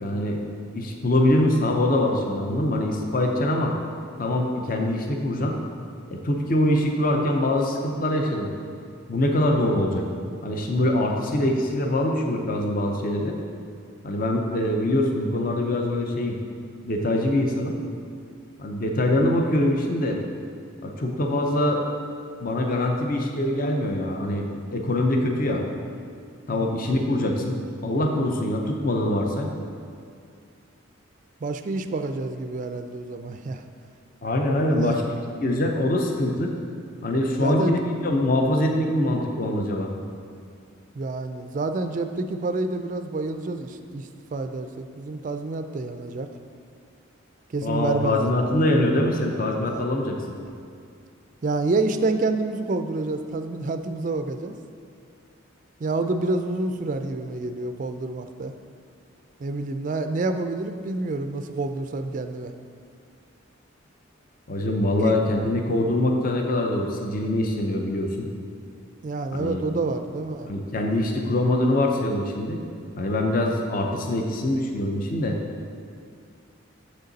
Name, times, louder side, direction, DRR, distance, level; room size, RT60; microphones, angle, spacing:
voice 1, 0.0-0.4 0.7-3.7 4.2-5.6 6.1-8.5 9.1-10.1 10.4-13.4 14.0-16.4 16.8-17.8 18.6-20.2 20.8-21.8 22.4-25.6 26.5-29.5 34.2-35.0 35.4-36.5 37.0-39.9 47.6-50.2 64.5-68.3 69.3-69.6 70.5-72.6 73.0-75.4, left 1 dB, 45° left, 2 dB, 0.6 m, -24 dB
voice 2, 26.5-26.9 31.4-33.6 34.7-35.0 37.4-37.8 41.0-46.3 47.5-48.3 49.7-49.8 51.4-54.5 55.8-58.5 59.4-62.5 65.0-65.2 69.0-70.5, right 3 dB, 40° right, 8 dB, 0.3 m, -28 dB
7.2 x 6.5 x 4.0 m, 2.3 s
head